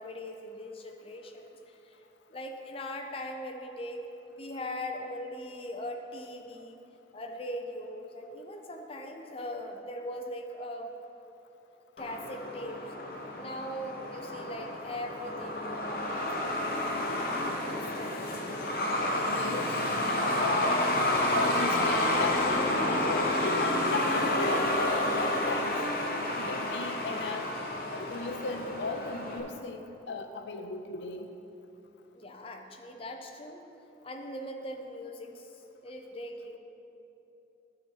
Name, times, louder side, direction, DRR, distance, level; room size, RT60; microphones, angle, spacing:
voice 1, 0.0-2.0 2.3-4.0 4.3-6.8 7.1-10.9 12.0-12.9 13.4-18.2 32.1-33.6 34.0-35.6 35.8-36.6, left 1 dB, 30° left, 3 dB, 0.6 m, -40 dB
Truck, 12.0-29.4, left 1 dB, 55° left, 0.9 m, -30 dB
voice 2, 19.3-19.8 20.4-20.9 21.3-25.8 26.3-27.5 27.9-31.3, left 3 dB, 80° left, 6 dB, 0.5 m, -36 dB
11.5 x 4.6 x 4.6 m, 3.0 s
head